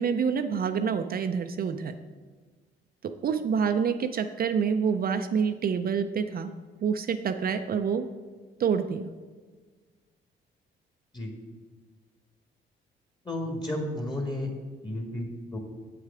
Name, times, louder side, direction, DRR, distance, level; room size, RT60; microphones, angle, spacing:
voice 1, 0.0-2.0 3.0-6.5 6.8-8.1 8.6-9.0, right 6 dB, 50° right, 8 dB, 0.5 m, -27 dB
voice 2, 13.2-14.5 14.8-15.6, left 1 dB, 20° left, 2 dB, 1.7 m, -32 dB
7.8 x 6.5 x 4.9 m, 1.4 s
cardioid pair, 90°, 20 cm